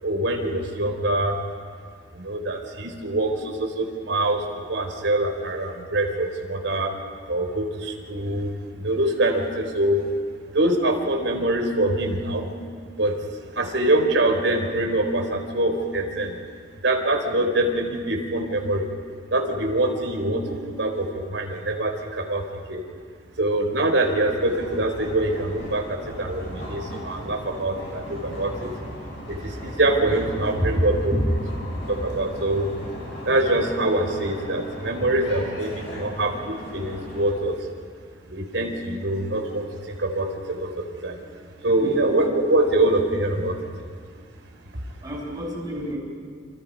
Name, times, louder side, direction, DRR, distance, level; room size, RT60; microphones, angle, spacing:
voice 1, 0.0-1.4 2.1-4.4 4.7-6.9 7.3-8.5 8.8-10.0 10.5-12.5 13.0-13.1 13.6-16.4 16.8-18.9 19.3-22.8 23.4-28.7 29.3-31.1 31.9-32.7 33.3-37.6 38.3-41.2 41.6-43.9, right 1 dB, 85° right, 3 dB, 4.0 m, -24 dB
sound 1, 24.4-37.3, equal, 75° left, 7.6 m, -37 dB
voice 2, 45.0-46.0, equal, 20° right, -3 dB, 6.8 m, -28 dB
29.0 x 27.5 x 5.3 m, 2.1 s
head